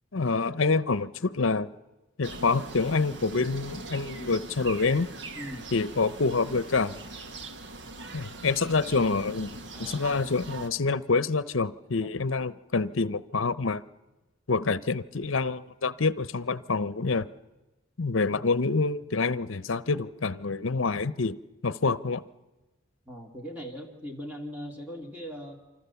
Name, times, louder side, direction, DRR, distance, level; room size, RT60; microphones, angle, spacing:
voice 1, 0.1-1.7 2.2-5.1 5.7-7.0 8.1-13.8 14.5-17.3 18.0-21.4 21.6-22.2, left 4 dB, 75° left, 16 dB, 0.8 m, -27 dB
sound 1, 2.2-10.7, right 2 dB, 60° right, 1.7 m, -41 dB
voice 2, 5.4-5.7 9.7-10.1 12.0-12.1 23.1-25.6, equal, 10° right, 1 dB, 2.6 m, -40 dB
28.0 x 25.5 x 7.1 m, 1.1 s
head